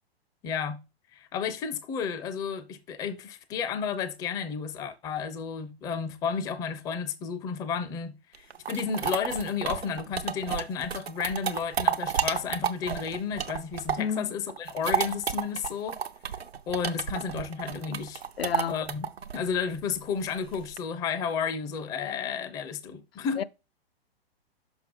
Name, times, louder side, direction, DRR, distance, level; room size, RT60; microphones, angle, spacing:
voice 1, 0.4-0.8 1.1-16.0 16.7-18.2 18.7-19.1 19.3-23.4, left 6 dB, 10° left, 0.4 m, -32 dB
sound 1, 8.3-14.2 14.5-20.8, right 7 dB, 80° right, 0.8 m, -31 dB
voice 2, 14.0-14.3 18.4-18.8 23.4-23.5, left 7 dB, 70° left, 0.5 m, -30 dB
6.2 x 5.7 x 3.8 m
figure-of-eight pair, 115°, 31 cm